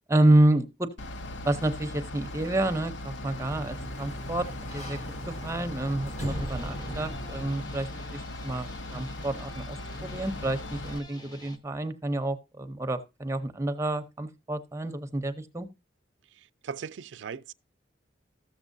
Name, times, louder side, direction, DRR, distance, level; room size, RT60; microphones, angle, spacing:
voice 1, 0.1-0.9 1.4-4.5 4.7-5.0 5.4-15.7, right 1 dB, 15° right, 0.6 m, -28 dB
Bus / Idling, 1.0-11.0, left 1 dB, 80° left, 0.7 m, -39 dB
Sliding door, 3.0-7.8, right 1 dB, 40° left, 1.7 m, -39 dB
sound 1, 6.3-11.6, left 1 dB, 20° left, 0.9 m, -47 dB
voice 2, 16.4-17.5, right 6 dB, 80° right, 0.4 m, -39 dB
13.5 x 7.2 x 2.6 m
head